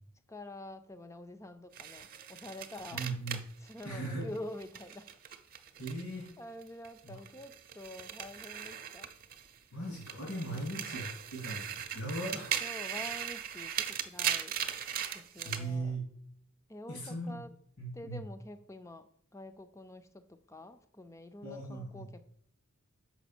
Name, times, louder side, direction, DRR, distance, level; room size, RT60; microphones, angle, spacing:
voice 1, 0.3-3.1 3.6-5.1 6.4-9.1 10.4-11.0 12.6-14.6 15.1-16.0 16.7-17.5 17.9-22.2, left 1 dB, 15° left, 10 dB, 0.5 m, -47 dB
sound 1, 1.7-6.3 6.6-9.6 9.9-15.7, right 9 dB, 40° right, 0.6 m, -39 dB
voice 2, 2.9-3.4 3.8-4.2 5.8-6.3 7.0-7.2 9.7-12.7 15.4-16.0 16.9-17.4 17.8-18.2 21.4-22.1, right 2 dB, 70° left, -3 dB, 3.1 m, -38 dB
7.1 x 5.8 x 6.1 m, 0.69 s
head